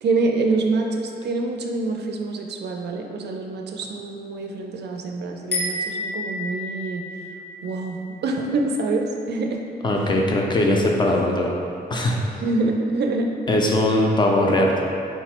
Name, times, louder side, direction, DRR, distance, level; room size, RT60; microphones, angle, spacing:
voice 1, 0.0-7.0 7.6-9.6 9.9-10.0 11.9-12.1 12.4-13.3, right 3 dB, 75° right, 2 dB, 0.4 m, -26 dB
sound 1, 5.5-8.9, left 1 dB, 75° left, 0.9 m, -31 dB
voice 2, 9.8-11.5 11.9-12.2 13.5-14.8, left 1 dB, 25° left, 0 dB, 0.4 m, -20 dB
4.5 x 2.0 x 4.2 m, 2.5 s
wide cardioid pair, 170°, 18 cm